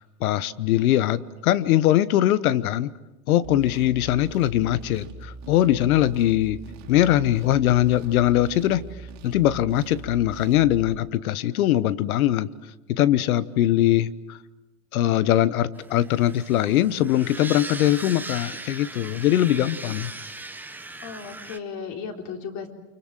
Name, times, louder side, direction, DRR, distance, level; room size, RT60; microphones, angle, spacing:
voice 1, 0.0-2.9 3.3-6.6 6.9-8.8 9.2-12.5 12.9-14.4 14.9-20.1, left 13 dB, 80° left, 17 dB, 1.3 m, -21 dB
sound 1, 3.4-11.0, right 3 dB, 40° right, 3.1 m, -41 dB
sound 2, 15.7-21.6, right 2 dB, 5° right, 1.2 m, -38 dB
voice 2, 21.0-22.7, left 6 dB, 40° left, 4 dB, 4.0 m, -35 dB
29.5 x 25.0 x 7.6 m, 1.0 s
supercardioid pair, 130°, 42 cm